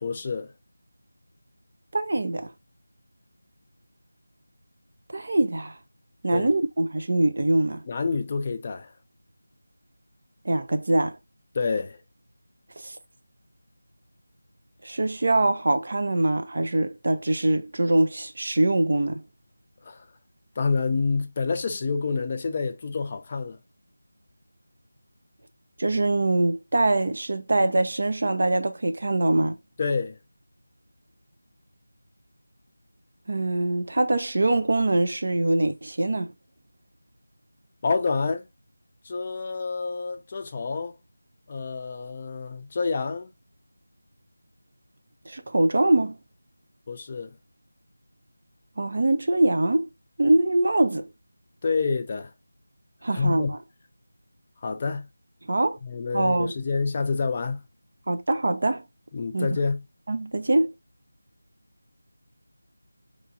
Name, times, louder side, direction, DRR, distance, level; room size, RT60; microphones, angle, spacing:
voice 1, 0.0-0.5 6.3-6.5 7.9-8.9 11.5-12.0 19.8-20.0 20.6-23.6 29.8-30.2 37.8-38.5 39.0-41.0 41.5-43.3 46.9-47.4 51.6-52.3 53.1-53.5 54.6-55.1 55.8-57.6 59.1-59.8, left 4 dB, 25° left, 0.5 m, -28 dB
voice 2, 1.9-2.5 5.1-5.8 6.2-7.8 10.4-11.2 12.8-13.0 14.8-19.2 25.8-29.6 33.3-36.3 45.3-46.2 48.8-49.9 50.2-51.1 53.0-53.6 55.5-55.8 56.1-56.5 58.1-58.8 59.3-59.6 60.1-60.7, right 2 dB, 50° right, 0.6 m, -23 dB
4.0 x 3.0 x 2.5 m
figure-of-eight pair, 165°, 0 cm